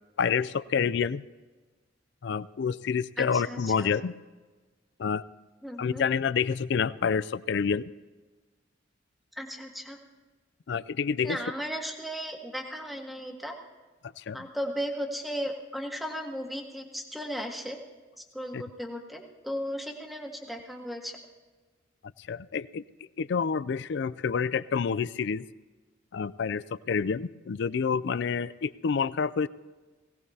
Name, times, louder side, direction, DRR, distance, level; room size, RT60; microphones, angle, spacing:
voice 1, 0.2-1.2 2.2-4.1 5.0-5.2 5.8-7.9 10.7-11.4 14.2-14.5 18.5-18.6 22.3-22.8 23.2-25.5 26.1-29.5, left 6 dB, 60° left, 17 dB, 0.4 m, -28 dB
voice 2, 3.2-3.9 5.6-6.0 9.4-10.0 11.2-13.5 14.3-17.8 18.3-21.2, equal, ahead, 2 dB, 1.4 m, -36 dB
20.5 x 17.0 x 2.8 m, 1.3 s
head